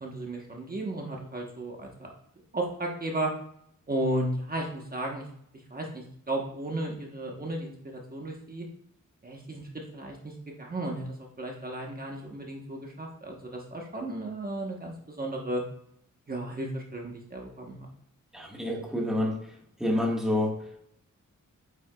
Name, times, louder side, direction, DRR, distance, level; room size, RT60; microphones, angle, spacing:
voice 1, 0.0-2.1 2.5-3.3 3.9-5.3 5.5-8.7 9.2-15.6 16.3-17.9, right 1 dB, 30° right, 0 dB, 1.2 m, -34 dB
voice 2, 18.3-19.4 19.8-20.5, left 1 dB, ahead, -2 dB, 1.6 m, -27 dB
8.8 x 7.0 x 2.3 m, 0.68 s
wide cardioid pair, 160°, 31 cm